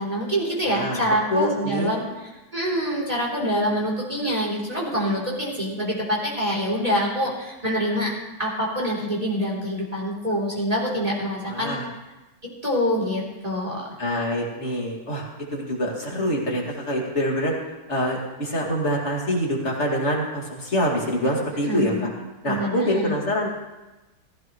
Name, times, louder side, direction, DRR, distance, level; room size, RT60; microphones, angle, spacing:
voice 1, 0.0-2.1 2.5-8.1 8.4-11.8 12.4-13.9 21.6-22.1 22.4-23.2, equal, 20° right, -4 dB, 3.5 m, -25 dB
voice 2, 0.6-1.0 1.3-1.9 11.4-11.9 14.0-15.2 15.5-17.5 17.9-22.1 22.4-23.5, equal, 40° left, -2 dB, 2.6 m, -25 dB
15.5 x 15.5 x 3.1 m, 1.1 s
omnidirectional pair, 2.0 m